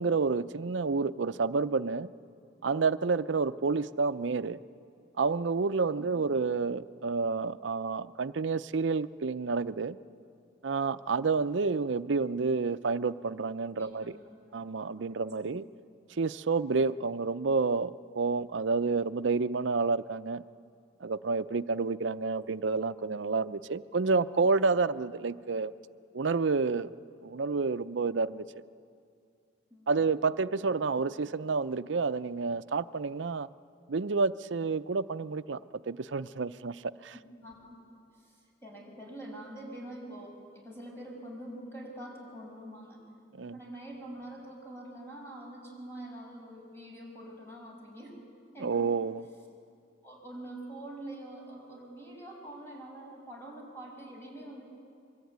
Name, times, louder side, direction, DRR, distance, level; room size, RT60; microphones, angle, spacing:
voice 1, 0.0-2.1 2.6-4.6 5.2-10.0 10.6-14.2 14.5-15.7 16.2-20.4 21.0-25.7 26.1-26.9 27.2-28.4 29.9-33.5 33.9-35.6 35.9-37.1 43.4-43.6 48.6-49.2, right 4 dB, 80° right, 13 dB, 0.6 m, -29 dB
voice 2, 6.0-6.3 13.8-14.1 14.5-14.6 14.9-15.5 29.7-29.9 37.1-37.8 38.1-43.0 43.4-48.2 48.5-48.9 50.0-54.7, right 1 dB, 15° left, -1 dB, 6.3 m, -45 dB
25.0 x 23.0 x 9.5 m, 2.4 s
head